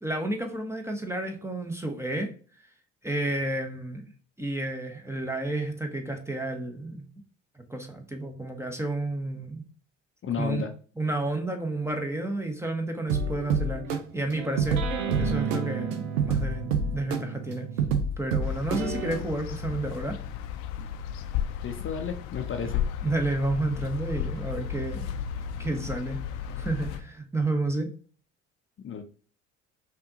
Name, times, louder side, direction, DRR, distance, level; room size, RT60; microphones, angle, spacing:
voice 1, 0.0-2.3 3.0-4.1 4.4-7.0 7.6-9.6 10.4-10.7 11.0-14.8 15.2-17.7 18.2-20.2 22.6-22.7 23.0-25.1 25.6-26.2 26.6-27.9, right 2 dB, 5° right, 4 dB, 0.9 m, -31 dB
voice 2, 10.2-10.7 21.6-22.8 28.8-29.0, left 6 dB, 35° left, 5 dB, 0.7 m, -32 dB
sound 1, 13.1-19.2, right 5 dB, 85° right, 0.6 m, -28 dB
sound 2, 18.4-27.0, left 9 dB, 70° left, 0.6 m, -34 dB
5.5 x 2.6 x 2.8 m, 0.40 s
hypercardioid pair, 55°, 38 cm